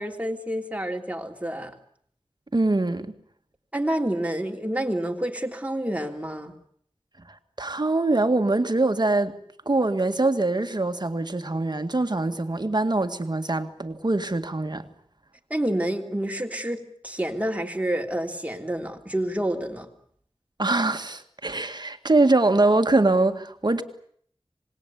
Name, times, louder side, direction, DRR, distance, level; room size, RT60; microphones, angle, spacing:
voice 1, 0.0-1.7 3.7-6.5 15.5-19.9, right 1 dB, 15° right, 3.2 m, -28 dB
voice 2, 2.5-3.1 7.6-9.4 9.7-14.9 20.6-23.8, right 2 dB, 45° right, 1.9 m, -23 dB
26.5 x 20.0 x 8.4 m
wide cardioid pair, 55°, 10 cm